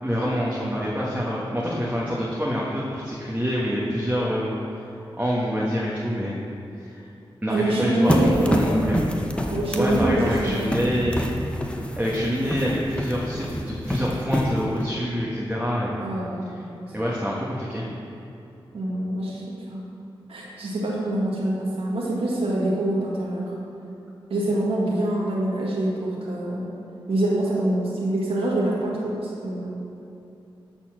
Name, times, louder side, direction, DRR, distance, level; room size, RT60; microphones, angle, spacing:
voice 1, 0.0-4.5 4.8-6.3 6.8-7.0 7.4-9.0 9.7-11.2 12.0-15.9 16.9-17.9, equal, 15° right, -6 dB, 1.5 m, -26 dB
voice 2, 7.5-8.7 9.5-10.6 16.0-16.9 18.7-19.8 20.3-23.5 24.3-26.7 27.1-29.8, right 1 dB, 85° right, -5 dB, 1.7 m, -25 dB
sound 1, 8.1-14.9, equal, 10° left, 0.9 m, -27 dB
12.5 x 4.3 x 6.2 m, 2.7 s
cardioid pair, 60°, 9 cm